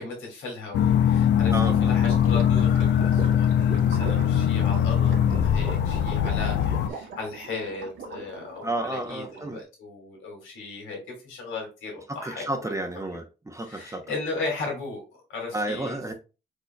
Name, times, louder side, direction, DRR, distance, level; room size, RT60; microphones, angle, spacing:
voice 1, 0.0-1.6 1.8-12.7 13.6-15.0 15.3-16.0, left 3 dB, 90° left, 2.1 m, -36 dB
sound 1, 0.7-6.9, left 9 dB, 60° left, 0.4 m, -21 dB
voice 2, 1.5-2.0 8.6-9.6 12.1-14.0 15.5-16.1, right 1 dB, 15° right, 0.7 m, -31 dB
Gurgling / Liquid, 1.9-9.6, right 6 dB, 85° right, 1.7 m, -41 dB
4.7 x 4.6 x 2.2 m
cardioid pair, 90°, 20 cm